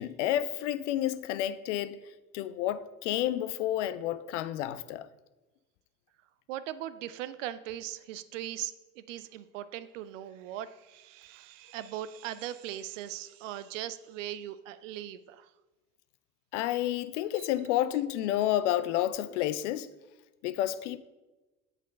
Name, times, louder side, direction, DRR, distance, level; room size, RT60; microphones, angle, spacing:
voice 1, 0.0-2.0 2.3-5.1 16.5-19.9 20.4-21.0, left 12 dB, 60° left, 0.5 m, -30 dB
voice 2, 6.5-15.5 17.4-17.5, right 12 dB, 60° right, 0.5 m, -39 dB
8.2 x 4.1 x 5.2 m
figure-of-eight pair, 65°, 42 cm